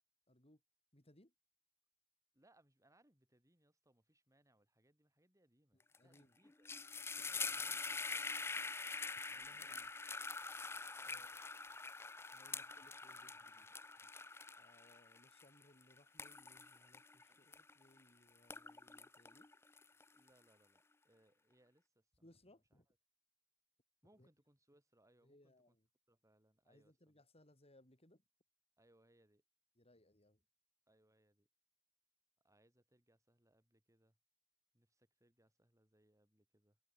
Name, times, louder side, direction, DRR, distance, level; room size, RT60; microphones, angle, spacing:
voice 1, 0.3-0.6 0.9-1.3 5.7-6.4 7.5-7.8 9.3-9.9 11.0-11.5 12.3-13.8 14.0-14.1 14.6-19.5 22.2-22.9 24.2-24.3 25.2-25.9 26.6-28.2 29.8-30.4, left 1 dB, 25° left, 6.2 m, -68 dB
voice 2, 2.3-6.7 7.1-8.6 9.3-10.1 11.0-11.3 17.3-17.4 20.1-22.1 24.0-25.8 26.1-27.2 28.8-29.4 30.9-31.5 32.4-34.2 34.7-36.8, right 1 dB, 15° right, 4.5 m, -74 dB
sound 1, 5.9-6.2 6.5-18.0 18.4-20.3, left 4 dB, 10° left, 0.3 m, -45 dB
head